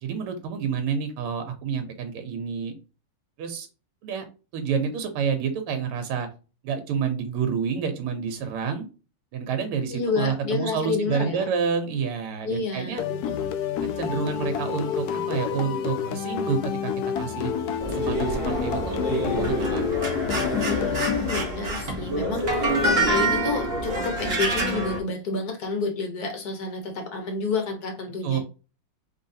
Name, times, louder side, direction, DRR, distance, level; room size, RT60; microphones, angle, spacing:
voice 1, 0.0-2.7 3.4-3.7 4.0-4.2 4.5-6.3 6.6-8.9 9.3-13.0 14.0-16.9 17.2-17.5 17.9-19.8 28.2-28.4, right 6 dB, 90° right, 6 dB, 1.8 m, -28 dB
voice 2, 9.9-11.5 12.4-13.4 20.7-28.4, left 4 dB, 55° left, 4 dB, 1.3 m, -30 dB
sound 1, 13.0-21.9, left 8 dB, 80° left, 0.8 m, -29 dB
sound 2, 17.8-25.0, right 1 dB, 35° right, 1.0 m, -26 dB
4.7 x 3.5 x 2.7 m, 0.32 s
omnidirectional pair, 2.3 m